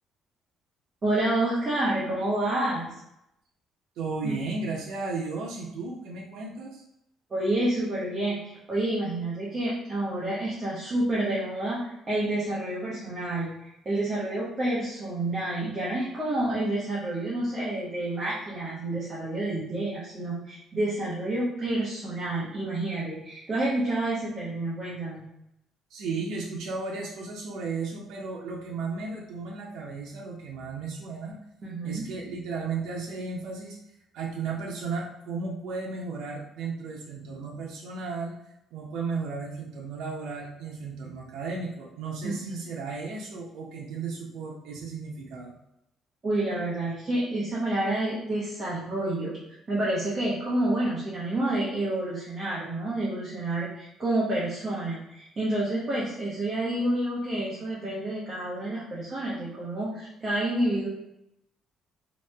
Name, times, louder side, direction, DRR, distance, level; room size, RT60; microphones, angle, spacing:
voice 1, 1.0-2.9 4.2-4.4 7.3-25.2 31.6-32.0 42.2-42.7 46.2-49.4 49.7-60.9, right 1 dB, 25° right, -7 dB, 0.8 m, -29 dB
voice 2, 4.0-6.8 25.9-31.4 31.8-33.8 34.1-38.4 38.7-45.5, right 4 dB, 80° right, -3 dB, 0.5 m, -34 dB
3.0 x 2.8 x 3.3 m, 0.83 s
cardioid pair, 150°, 0 cm